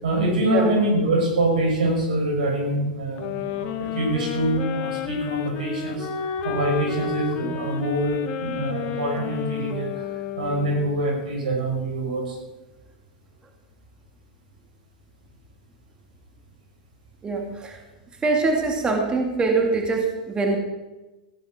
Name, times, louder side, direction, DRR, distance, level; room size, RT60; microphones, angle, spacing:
voice 1, 0.0-6.1 6.4-9.9 10.4-12.4, right 1 dB, 85° right, 1 dB, 5.4 m, -25 dB
sound 1, 3.2-11.1, left 9 dB, 50° left, 1.8 m, -31 dB
voice 2, 17.2-17.8 18.2-20.6, right 3 dB, 20° right, 2 dB, 2.5 m, -23 dB
16.5 x 10.0 x 6.1 m, 1.1 s
hypercardioid pair, 115°, 4 cm